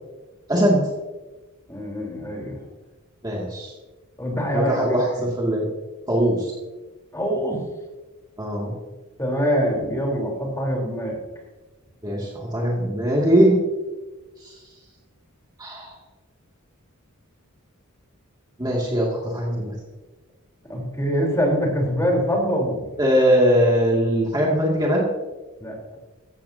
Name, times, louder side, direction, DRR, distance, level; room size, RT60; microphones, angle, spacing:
voice 1, 0.5-0.9 3.2-3.7 4.5-5.7 6.1-6.6 8.4-8.8 12.0-13.5 14.4-14.6 15.6-15.9 18.6-19.7 23.0-25.1, equal, 20° right, -3 dB, 2.4 m, -21 dB
voice 2, 1.7-2.6 4.2-4.8 7.1-7.6 9.2-11.2 20.7-22.9 25.6-25.8, equal, 15° left, -1 dB, 4.0 m, -24 dB
15.5 x 15.5 x 2.9 m, 1.2 s
head